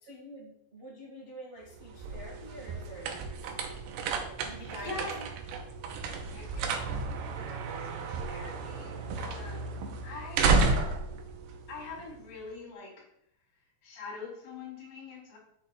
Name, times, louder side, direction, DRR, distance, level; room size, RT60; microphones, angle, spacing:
voice 1, 0.0-3.3 4.4-5.2, right 1 dB, 50° right, -5 dB, 0.6 m, -46 dB
sound 1, 1.7-12.4, right 4 dB, 85° right, 2.7 m, -32 dB
voice 2, 4.6-5.2 6.3-6.8 7.6-9.7 10.0-10.6 11.7-13.0 13.8-15.4, left 4 dB, 75° left, -2 dB, 4.2 m, -44 dB
10.0 x 6.5 x 2.3 m, 0.74 s
omnidirectional pair, 4.5 m